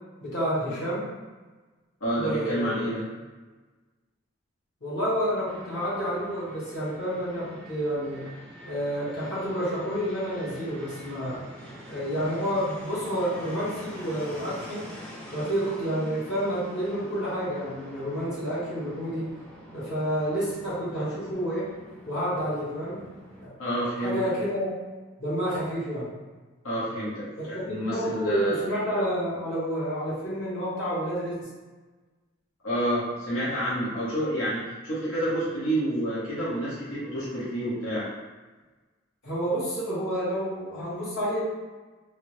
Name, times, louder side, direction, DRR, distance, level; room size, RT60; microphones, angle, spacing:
voice 1, 0.2-1.1 2.1-2.9 4.8-8.2 8.6-11.4 11.9-14.9 15.3-19.3 19.7-21.7 22.0-23.0 23.4-23.5 24.0-24.7 25.2-26.1 27.7-31.4 39.2-41.4, equal, 60° left, -9 dB, 1.2 m, -29 dB
voice 2, 2.0-3.0 23.6-24.3 26.6-27.3 27.7-28.7 32.6-38.1, right 1 dB, 85° left, -10 dB, 1.0 m, -29 dB
Fixed-wing aircraft airplane, 5.5-23.5, equal, 5° left, 0.4 m, -45 dB
3.3 x 2.1 x 3.0 m, 1.3 s
head